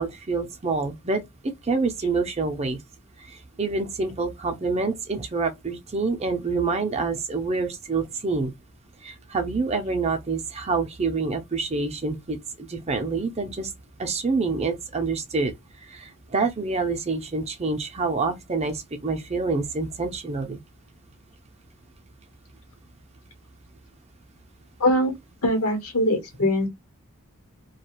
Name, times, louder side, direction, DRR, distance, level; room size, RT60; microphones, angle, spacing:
voice 1, 0.0-2.8 3.3-8.5 9.0-13.7 14.0-15.5 15.9-20.6, right 4 dB, 30° right, 0.5 m, -27 dB
voice 2, 24.8-25.1 25.4-26.7, left 1 dB, 75° left, 1.0 m, -22 dB
2.4 x 2.3 x 2.9 m
head